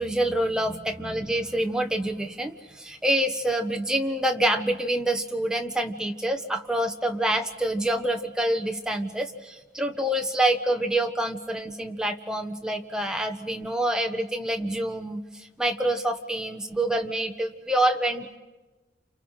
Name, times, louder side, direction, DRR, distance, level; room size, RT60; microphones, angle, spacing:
voice 1, 0.0-18.4, right 1 dB, 5° right, 4 dB, 1.4 m, -27 dB
29.5 x 28.5 x 5.8 m, 1.2 s
head